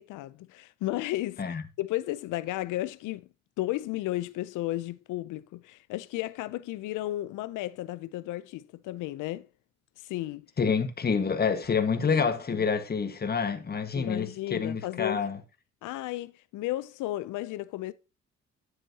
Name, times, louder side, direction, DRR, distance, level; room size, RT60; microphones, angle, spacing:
voice 1, 0.0-1.4 1.8-3.3 3.6-9.5 10.0-10.5 12.0-12.1 12.5-12.7 13.9-15.3 15.8-17.9, left 16 dB, 85° left, 0.5 m, -34 dB
voice 2, 10.6-15.4, left 5 dB, 30° left, 1.4 m, -28 dB
9.0 x 8.1 x 2.8 m
cardioid pair, 90°, 30 cm